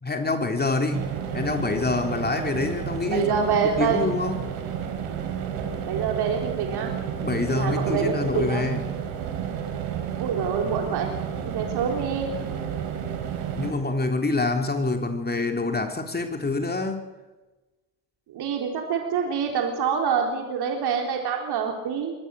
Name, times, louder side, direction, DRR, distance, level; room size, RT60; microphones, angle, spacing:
voice 1, 0.0-4.5 7.2-9.0 13.5-17.0, left 3 dB, 20° left, 4 dB, 3.4 m, -26 dB
sound 1, 0.9-13.7, right 8 dB, 75° right, 4.4 m, -31 dB
voice 2, 3.1-4.0 5.8-6.9 7.5-8.7 10.2-11.1 11.4-12.3 18.3-22.1, right 6 dB, 55° right, 2 dB, 3.8 m, -26 dB
24.0 x 18.5 x 6.5 m, 1.1 s
hypercardioid pair, 65°, 46 cm